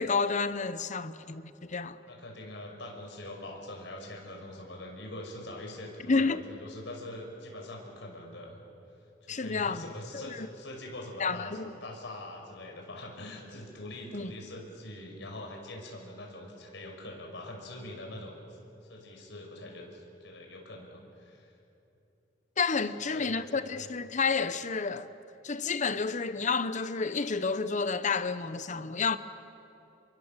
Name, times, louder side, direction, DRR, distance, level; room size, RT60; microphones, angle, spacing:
voice 1, 0.0-2.0 6.1-6.4 9.3-9.8 10.1-10.5 11.2-11.7 14.1-14.3 22.6-25.1 25.4-29.2, left 4 dB, 40° left, 0.9 m, -30 dB
voice 2, 2.0-8.6 9.2-18.6 18.9-21.5 22.9-23.8, left 1 dB, 75° left, 5.7 m, -43 dB
28.5 x 23.5 x 7.5 m
head